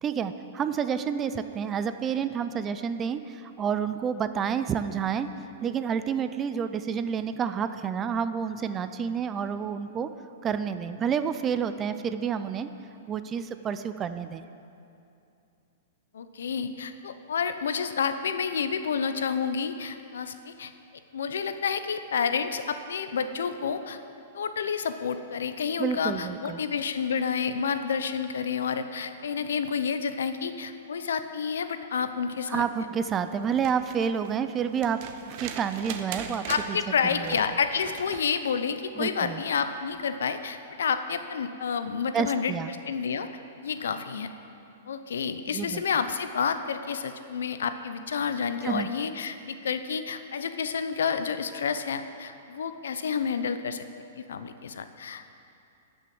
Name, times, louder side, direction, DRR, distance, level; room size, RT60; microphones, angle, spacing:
voice 1, 0.0-5.3 5.6-10.1 10.4-12.7 13.1-14.4 25.8-26.6 32.5-36.8 37.1-37.4 39.0-39.4 42.1-42.7 45.5-45.8 48.6-48.9, right 7 dB, 20° right, 11 dB, 0.5 m, -29 dB
voice 2, 16.1-20.7 21.1-24.0 24.3-32.6 36.5-43.3 43.6-44.3 44.9-53.8 54.2-55.4, left 6 dB, 85° left, 10 dB, 0.7 m, -29 dB
sound 1, 33.4-38.3 39.9-40.0, right 8 dB, 45° right, 0.8 m, -40 dB
13.0 x 6.2 x 7.8 m, 2.6 s
hypercardioid pair, 145°, 0 cm